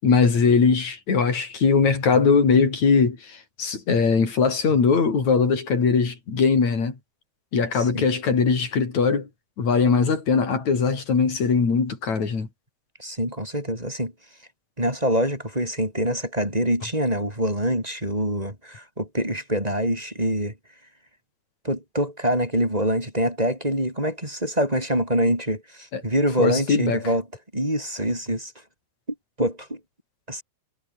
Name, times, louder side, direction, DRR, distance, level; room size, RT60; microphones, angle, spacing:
voice 1, 0.0-6.9 7.5-9.3 9.6-12.5 25.9-26.0 26.4-27.0, left 5 dB, 35° left, 5.6 m, -20 dB
voice 2, 7.7-8.1 13.0-14.1 14.8-20.5 21.6-27.2 27.5-28.5 29.4-29.8 30.3-30.4, equal, 5° right, 6.1 m, -25 dB
omnidirectional pair, 5.9 m